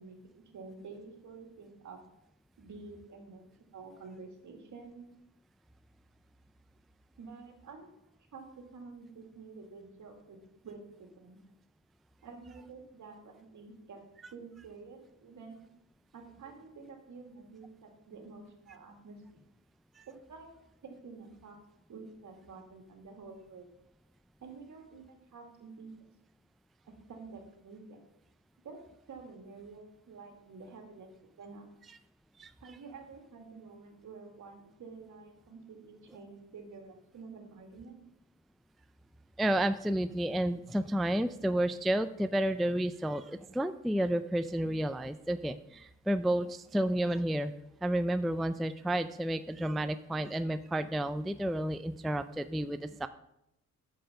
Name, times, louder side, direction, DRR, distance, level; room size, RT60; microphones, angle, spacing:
voice 1, 0.0-2.0 2.6-5.1 7.2-7.9 8.3-10.4 10.6-11.4 12.2-14.0 14.3-15.6 16.1-19.5 20.1-20.5 20.8-21.6 21.9-23.7 24.4-26.0 26.9-28.0 28.6-28.8 29.1-31.1 31.4-31.7 32.6-38.0, right 4 dB, 65° right, 3 dB, 2.1 m, -49 dB
voice 2, 39.4-47.5 47.8-53.1, right 1 dB, ahead, 11 dB, 0.3 m, -31 dB
7.8 x 6.7 x 5.4 m, 0.82 s
cardioid pair, 95°, 32 cm